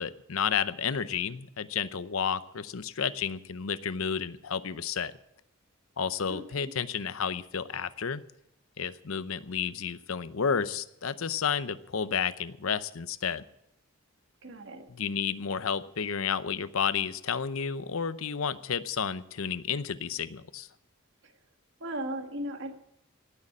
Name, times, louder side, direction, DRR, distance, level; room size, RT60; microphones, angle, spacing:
voice 1, 0.0-5.1 6.0-8.2 8.8-13.4 14.9-20.7, left 6 dB, 80° left, 14 dB, 0.7 m, -31 dB
voice 2, 6.3-6.7 14.4-14.9 21.2-21.3 21.8-22.7, right 1 dB, 60° right, 5 dB, 1.8 m, -37 dB
18.0 x 6.7 x 8.6 m, 0.80 s
head